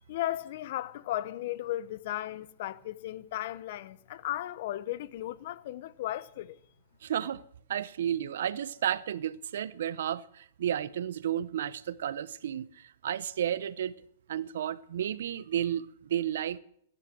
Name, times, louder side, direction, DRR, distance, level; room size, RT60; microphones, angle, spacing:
voice 1, 0.1-6.6, left 14 dB, 60° left, 0.8 m, -35 dB
voice 2, 7.0-7.4 7.7-13.9 14.3-16.6, right 10 dB, 75° right, 0.8 m, -32 dB
16.5 x 10.5 x 7.7 m
hypercardioid pair, 130°, 0 cm